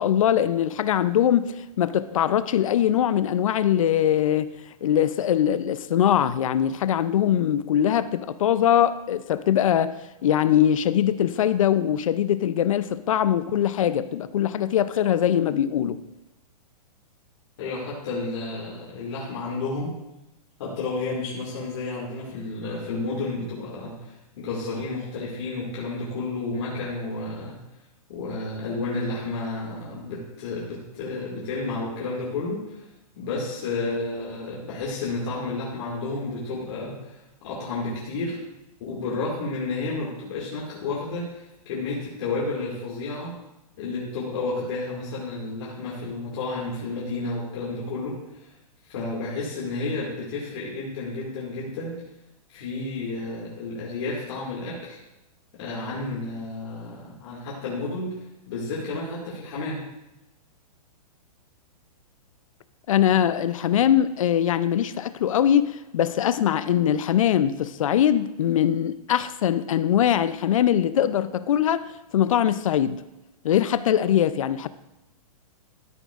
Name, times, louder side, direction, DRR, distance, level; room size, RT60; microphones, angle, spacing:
voice 1, 0.0-4.5 4.8-9.9 10.2-16.0 62.9-71.8 72.1-73.0 73.4-74.7, left 10 dB, 55° left, 0.5 m, -22 dB
voice 2, 17.6-19.9 20.6-27.6 28.1-32.9 33.2-38.4 38.8-43.3 43.8-48.5 48.8-51.9 52.5-55.0 55.5-58.1 58.5-59.9, left 3 dB, 40° left, 2.1 m, -31 dB
13.0 x 9.1 x 2.4 m
hypercardioid pair, 175°, 20 cm